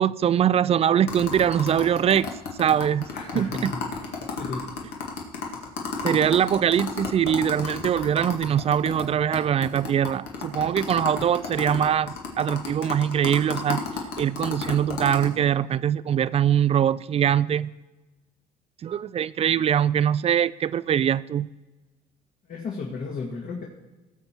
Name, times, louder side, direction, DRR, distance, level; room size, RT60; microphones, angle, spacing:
voice 1, 0.0-2.3 2.6-3.1 3.3-3.7 6.0-13.8 14.2-17.7 18.8-21.5, right 9 dB, 35° right, 0.4 m, -22 dB
sound 1, 1.1-9.0 9.3-9.4 9.6-15.3, left 5 dB, 80° left, 2.1 m, -32 dB
voice 2, 3.1-3.8 4.4-4.7 22.5-23.6, left 4 dB, 55° left, 1.9 m, -33 dB
17.5 x 7.0 x 4.5 m
cardioid pair, 110°, 17 cm